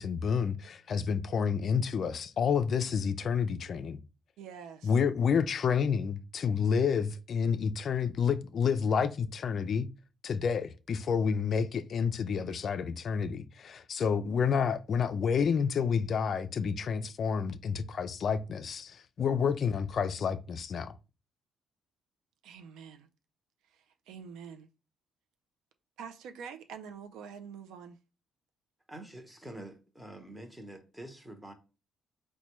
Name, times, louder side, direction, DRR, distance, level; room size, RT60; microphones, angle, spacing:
voice 1, 0.0-4.0 4.8-9.9 10.2-20.9, left 6 dB, 55° left, 0.3 m, -29 dB
voice 2, 4.4-4.9 22.4-23.1 23.7-24.7 26.0-28.0, right 7 dB, 90° right, 0.4 m, -46 dB
voice 3, 28.9-31.5, right 1 dB, 10° right, 0.9 m, -46 dB
4.1 x 2.1 x 3.0 m
cardioid pair, 90°, 0 cm